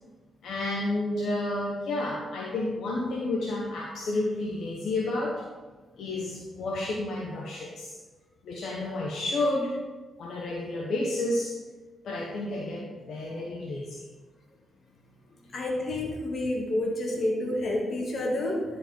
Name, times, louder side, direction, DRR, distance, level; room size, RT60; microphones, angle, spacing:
voice 1, 0.4-5.4 6.0-8.0 8.4-9.8 10.2-11.5 12.0-14.0 15.4-15.5, left 2 dB, 75° left, -2 dB, 1.1 m, -31 dB
voice 2, 15.5-18.6, left 1 dB, 55° left, 0 dB, 2.1 m, -29 dB
10.5 x 5.0 x 4.5 m, 1.3 s
supercardioid pair, 50°, 0 cm